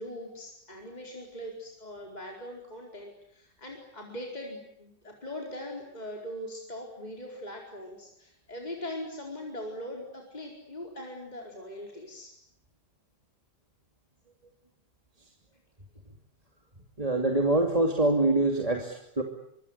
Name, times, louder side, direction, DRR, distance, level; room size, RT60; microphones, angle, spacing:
voice 1, 0.0-12.3, left 1 dB, 25° left, 0 dB, 4.7 m, -41 dB
voice 2, 17.0-19.2, right 2 dB, 20° right, 2 dB, 2.8 m, -25 dB
25.0 x 24.5 x 8.1 m, 0.77 s
omnidirectional pair, 1.8 m